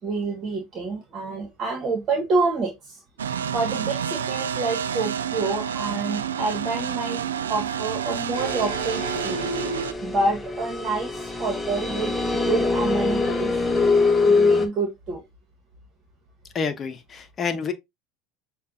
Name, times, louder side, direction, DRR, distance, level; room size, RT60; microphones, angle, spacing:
voice 1, 0.0-3.0 3.5-7.2 7.5-9.5 10.0-13.5 14.2-15.2, right 3 dB, 45° right, 1.4 m, -28 dB
sound 1, 3.2-9.9, right 7 dB, 85° right, 0.3 m, -29 dB
sound 2, 8.4-14.7, left 3 dB, 10° left, 1.0 m, -24 dB
voice 2, 16.5-17.7, left 5 dB, 35° left, 0.9 m, -28 dB
6.5 x 2.5 x 2.7 m
hypercardioid pair, 75°, 0 cm